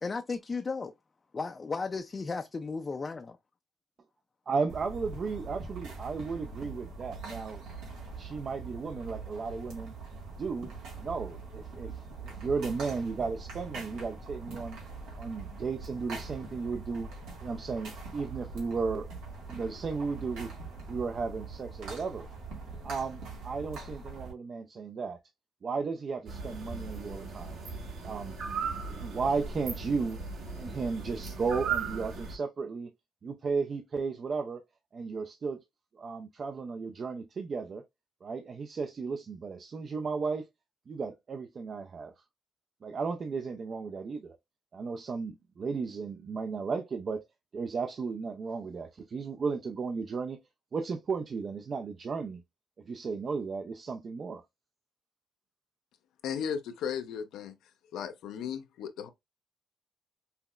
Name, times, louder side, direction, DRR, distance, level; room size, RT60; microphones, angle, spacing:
voice 1, 0.0-0.9 1.3-3.4, left 4 dB, 30° left, 0.4 m, -35 dB
voice 2, 4.5-7.6 8.2-9.9 10.3-10.7 11.0-14.8 15.2-17.1 17.4-19.1 19.5-20.5 20.9-22.3 22.8-25.2 25.6-27.6 28.0-28.4 28.6-30.2 30.6-32.9 33.2-34.6 34.9-35.6 35.9-37.8 38.2-40.5 40.9-42.1 42.8-44.4 44.7-47.3 47.5-50.4 50.7-52.4 52.9-54.4, right 4 dB, 45° right, 0.4 m, -34 dB
sound 1, 4.7-24.3, right 4 dB, 85° right, 1.5 m, -43 dB
sound 2, 26.3-32.4, right 5 dB, 65° right, 1.5 m, -37 dB
voice 3, 56.2-57.6 57.9-59.1, left 7 dB, 85° left, 0.5 m, -35 dB
5.6 x 2.1 x 2.3 m
cardioid pair, 90°, 0 cm